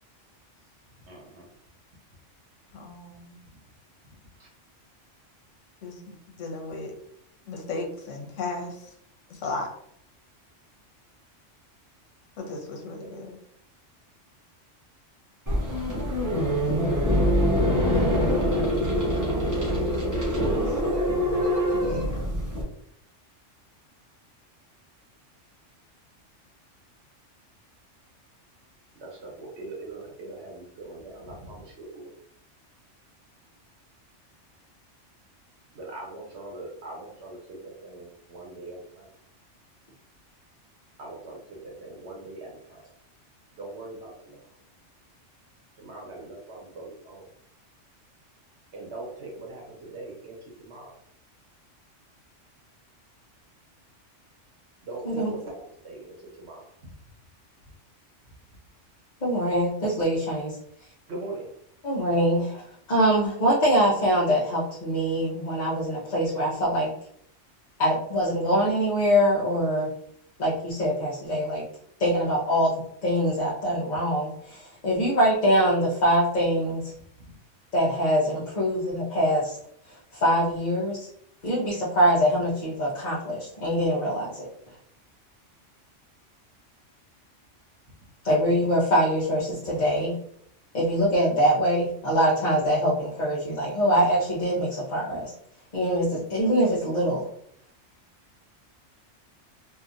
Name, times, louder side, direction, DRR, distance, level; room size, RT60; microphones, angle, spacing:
voice 1, 1.1-1.5 4.4-4.5 13.0-13.1 17.9-21.5 29.0-32.1 35.7-39.1 41.0-42.9 43.6-44.4 45.8-47.3 48.7-51.0 54.8-56.9 61.1-61.5 77.3-77.4, right 2 dB, 65° right, -2 dB, 1.0 m, -41 dB
voice 2, 2.7-3.4 5.8-6.0 6.3-6.9 7.5-8.9 9.3-9.7 12.4-13.4 21.8-22.3, left 3 dB, 85° left, 1 dB, 1.1 m, -35 dB
sound 1, 15.5-22.6, equal, 20° right, 0.5 m, -24 dB
voice 3, 59.2-60.6 61.8-66.9 67.8-69.9 70.4-71.6 72.0-76.9 77.7-79.6 80.1-81.1 81.4-84.5 88.2-90.2 90.7-95.3 95.7-97.2, equal, 45° left, -7 dB, 0.7 m, -24 dB
2.8 x 2.4 x 2.4 m, 0.68 s
omnidirectional pair, 1.3 m